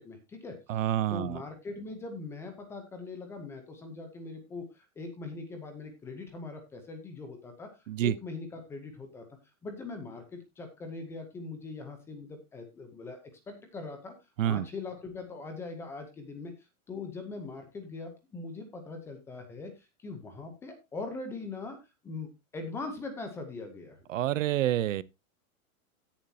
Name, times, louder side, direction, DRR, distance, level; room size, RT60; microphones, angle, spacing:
voice 1, 0.0-0.8 1.1-9.3 9.6-13.2 13.5-14.1 14.4-21.8 22.0-24.0, left 3 dB, 5° left, 0.6 m, -41 dB
voice 2, 0.7-1.4 7.9-8.1 14.4-14.6 24.1-25.0, right 12 dB, 60° right, 0.7 m, -28 dB
16.0 x 7.3 x 2.7 m
supercardioid pair, 170°, 44 cm